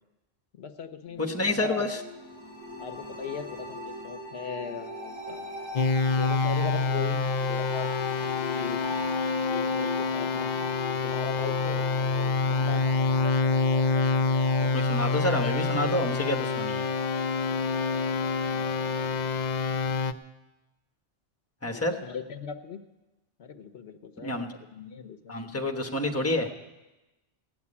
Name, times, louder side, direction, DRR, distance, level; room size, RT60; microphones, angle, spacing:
voice 1, 0.5-1.9 2.8-5.5 6.1-7.9 8.2-8.8 9.5-10.5 11.0-12.9 21.6-22.8 23.4-25.7, left 6 dB, 85° left, 9 dB, 1.1 m, -39 dB
sound 1, 1.0-19.1, left 1 dB, 25° right, 3.8 m, -39 dB
voice 2, 1.2-2.0 14.7-16.9 21.6-22.0 24.2-24.5 25.3-26.5, left 1 dB, 15° left, 3 dB, 1.2 m, -28 dB
sound 2, 5.8-20.1, left 4 dB, 50° left, 0.7 m, -27 dB
17.5 x 7.1 x 9.7 m, 1.0 s
omnidirectional pair, 1.0 m